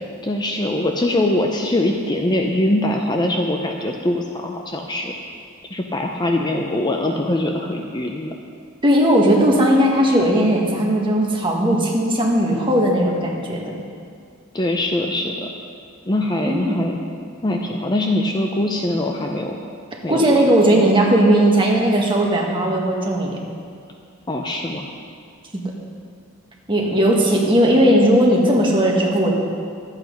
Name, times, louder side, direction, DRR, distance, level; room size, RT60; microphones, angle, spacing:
voice 1, 0.2-5.2 5.7-8.3 14.5-15.5 16.0-17.0 17.4-19.6 20.0-20.4 24.3-24.9, left 1 dB, 20° left, 2 dB, 0.5 m, -22 dB
voice 2, 8.8-13.7 16.5-16.8 20.1-23.4 25.5-25.6 26.7-29.3, right 1 dB, 25° right, -1 dB, 1.5 m, -17 dB
12.0 x 8.3 x 5.2 m, 2.3 s
head